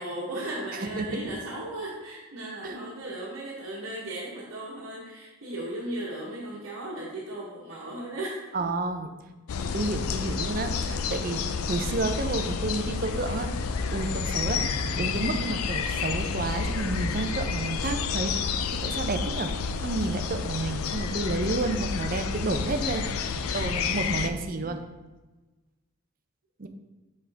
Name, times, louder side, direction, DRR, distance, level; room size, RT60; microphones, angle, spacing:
voice 1, 0.0-8.4 9.6-9.9 10.9-11.0, right 1 dB, 65° right, -6 dB, 1.2 m, -36 dB
voice 2, 0.8-1.3 2.6-2.8 8.5-9.1 9.7-13.5 13.9-18.4 18.8-19.5 19.8-24.8 26.6-26.7, right 2 dB, 40° right, 7 dB, 0.5 m, -30 dB
sound 1, 9.5-24.3, left 5 dB, 85° left, 0.4 m, -30 dB
6.5 x 5.6 x 3.4 m, 1.2 s
head